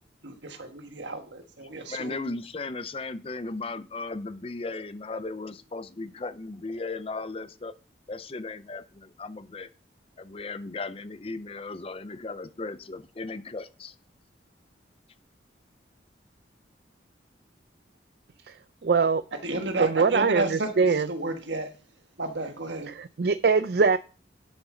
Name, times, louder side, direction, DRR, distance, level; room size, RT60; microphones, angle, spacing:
voice 1, 0.2-2.3 19.4-21.7 22.2-22.9, right 2 dB, 75° right, 6 dB, 1.5 m, -32 dB
voice 2, 1.9-7.7 8.1-9.7 10.2-13.9, left 3 dB, 30° left, 13 dB, 0.5 m, -36 dB
voice 3, 18.8-19.2 19.8-21.1 22.9-24.0, right 5 dB, 55° right, 13 dB, 0.4 m, -22 dB
10.5 x 7.1 x 3.8 m, 0.36 s
head